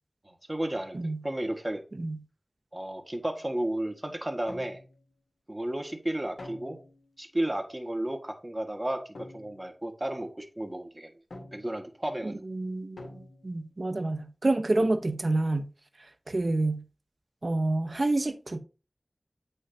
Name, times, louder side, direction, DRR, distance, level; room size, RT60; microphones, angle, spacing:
voice 1, 0.3-1.0 1.2-1.8 2.7-4.8 5.5-6.8 7.2-11.1 11.5-12.3, right 1 dB, 25° right, 1.7 m, -33 dB
voice 2, 1.9-2.2 12.2-15.7 16.3-16.8 17.4-18.6, right 2 dB, 60° right, 1.0 m, -28 dB
sound 1, 4.5-5.1 6.4-7.1 9.1-9.7 11.3-11.9 13.0-13.7 14.8-15.3, left 2 dB, 90° left, 1.6 m, -46 dB
8.3 x 5.5 x 2.8 m
wide cardioid pair, 45°, 0 cm